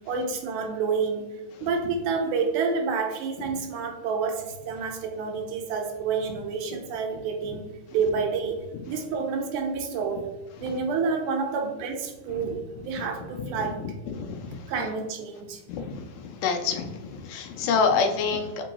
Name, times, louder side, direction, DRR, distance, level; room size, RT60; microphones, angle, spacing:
voice 1, 0.1-1.3 1.6-7.6 7.9-10.3 10.6-13.8 14.7-15.6, right 5 dB, 80° right, 3 dB, 1.9 m, -29 dB
voice 2, 16.4-18.6, left 5 dB, 90° left, 4 dB, 2.1 m, -26 dB
6.7 x 2.3 x 2.9 m, 1.0 s
omnidirectional pair, 3.6 m